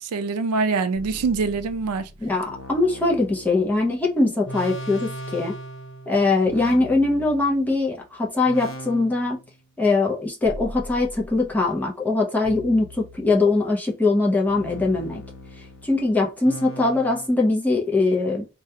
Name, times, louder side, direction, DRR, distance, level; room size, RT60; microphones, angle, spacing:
voice 1, 0.0-2.1, right 4 dB, 90° right, 0.4 m, -24 dB
sound 1, 1.0-8.0 8.5-9.6 10.4-11.6 12.5-13.7 14.5-17.3, equal, 60° left, 0.7 m, -39 dB
voice 2, 2.2-5.5 6.1-9.4 9.8-15.2 15.8-18.5, left 3 dB, 10° left, 0.5 m, -22 dB
2.3 x 2.2 x 2.7 m
head